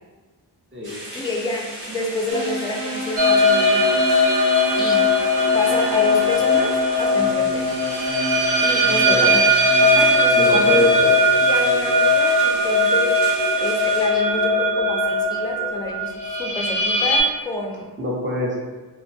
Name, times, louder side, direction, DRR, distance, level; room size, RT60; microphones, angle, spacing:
sound 1, 0.8-14.1, equal, 55° right, 1.0 m, -37 dB
voice 1, 1.1-4.0 4.8-5.1 5.5-7.7 8.6-9.5 9.8-10.8 11.4-13.2 13.6-17.9, left 2 dB, 10° left, 0 dB, 0.3 m, -29 dB
sound 2, 2.3-12.1, equal, 90° right, 1.2 m, -31 dB
sound 3, 3.2-17.2, left 1 dB, 75° right, 0.6 m, -19 dB
voice 2, 9.0-9.4 10.3-11.1 18.0-18.6, left 2 dB, 30° right, -4 dB, 0.7 m, -23 dB
2.9 x 2.1 x 2.6 m, 1.3 s
wide cardioid pair, 90°, 42 cm